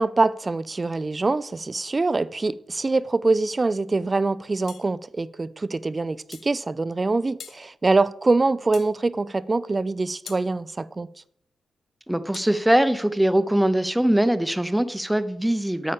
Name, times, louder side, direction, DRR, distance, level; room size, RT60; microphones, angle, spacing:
voice 1, 0.0-11.1, right 3 dB, 30° right, 0.4 m, -24 dB
sound 1, 4.7-4.9 6.3-6.5 7.4-7.6 8.7-9.0 10.3-10.5 12.3-12.5, left 7 dB, 80° left, 0.7 m, -42 dB
voice 2, 12.1-15.9, right 1 dB, 5° right, 0.7 m, -22 dB
8.6 x 4.9 x 7.0 m
cardioid pair, 80°, 0 cm